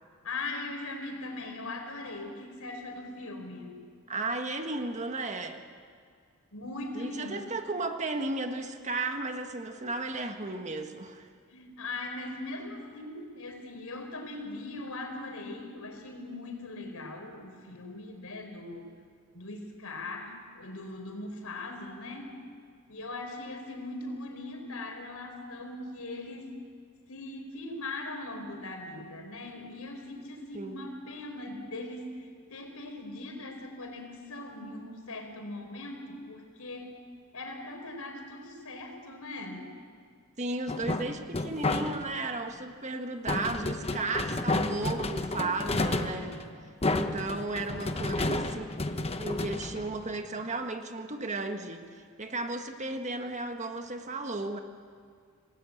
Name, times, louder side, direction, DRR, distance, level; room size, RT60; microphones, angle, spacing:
voice 1, 0.2-3.8 6.5-7.5 11.5-18.9 19.3-22.3 22.9-26.5 27.1-36.9 37.3-39.7 45.6-46.4, left 2 dB, 80° left, 4 dB, 4.5 m, -40 dB
voice 2, 4.1-5.6 6.9-11.3 30.5-30.8 40.4-46.3 46.9-48.7 49.2-54.6, right 2 dB, 35° right, 5 dB, 1.6 m, -34 dB
sound 1, 40.7-42.3 43.3-50.4, left 2 dB, 30° left, 1.1 m, -31 dB
27.5 x 19.0 x 8.6 m, 2.1 s
head